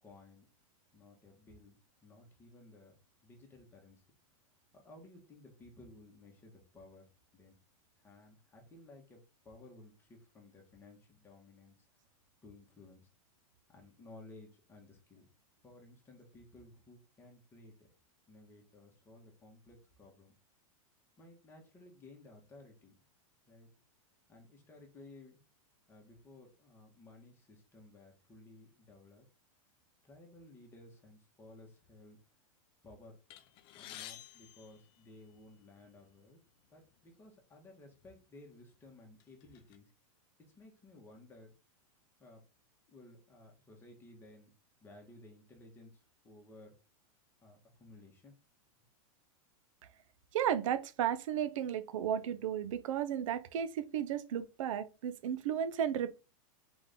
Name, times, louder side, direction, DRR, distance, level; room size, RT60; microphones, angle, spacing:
voice 1, 0.0-0.4 0.9-1.8 2.0-3.0 3.2-4.0 4.7-7.0 7.3-7.6 8.0-11.8 12.4-13.0 13.7-15.3 15.6-17.9 18.3-20.3 21.2-22.9 23.5-23.7 24.3-25.4 25.9-29.2 30.0-32.2 32.8-33.2 33.7-36.4 36.7-39.9 40.5-41.5 42.2-42.4 42.9-44.5 44.8-46.7 47.4-48.3, left 2 dB, 10° left, 1.4 m, -57 dB
sound 1, 33.3-35.6 36.5-36.6 36.9-37.1 37.9-38.1 38.6-39.8, left 12 dB, 30° left, 0.5 m, -52 dB
voice 2, 50.3-56.2, right 9 dB, 65° right, 0.7 m, -34 dB
3.9 x 3.7 x 3.6 m
supercardioid pair, 160°, 18 cm